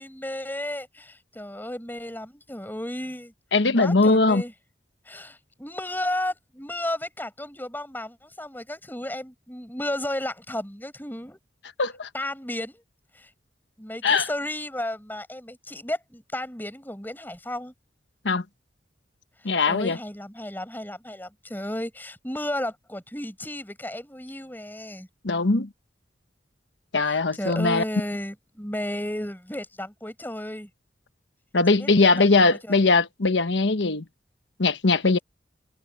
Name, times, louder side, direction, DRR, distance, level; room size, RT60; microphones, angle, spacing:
voice 1, 0.0-3.3 3.8-4.5 5.0-11.4 12.1-12.8 13.1-13.3 13.8-17.7 19.4-25.1 27.0-30.7 31.8-32.7, left 1 dB, 10° left, 6.0 m, -33 dB
voice 2, 3.5-4.4 11.8-12.1 14.0-14.3 18.2-18.4 19.4-20.0 25.2-25.7 26.9-27.8 31.5-34.0 34.6-35.2, left 3 dB, 85° left, 1.2 m, -20 dB
head